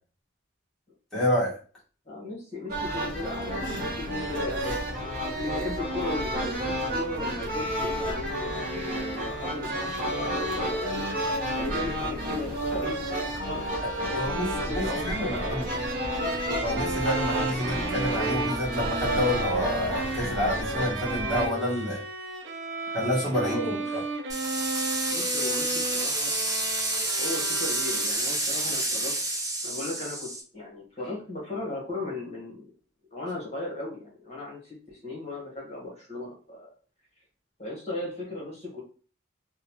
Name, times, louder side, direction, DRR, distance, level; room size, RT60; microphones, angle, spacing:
voice 1, 1.1-1.6 14.1-15.6 16.6-22.0 22.9-23.6 23.9-24.0, left 1 dB, ahead, -10 dB, 1.1 m, -28 dB
voice 2, 2.1-4.8 5.3-11.0 11.5-13.0 13.3-14.2 14.5-15.7 17.5-17.8 23.3-24.1 25.1-26.3 27.2-29.1 29.6-32.7 33.1-36.7 37.6-38.8, left 2 dB, 35° left, -4 dB, 1.0 m, -36 dB
sound 1, 2.7-21.5, right 1 dB, 45° right, 0.9 m, -31 dB
Bowed string instrument, 13.7-28.4, right 2 dB, 80° right, 0.5 m, -35 dB
sound 2, 24.3-30.4, right 2 dB, 20° right, 0.6 m, -29 dB
2.9 x 2.0 x 2.9 m, 0.39 s
head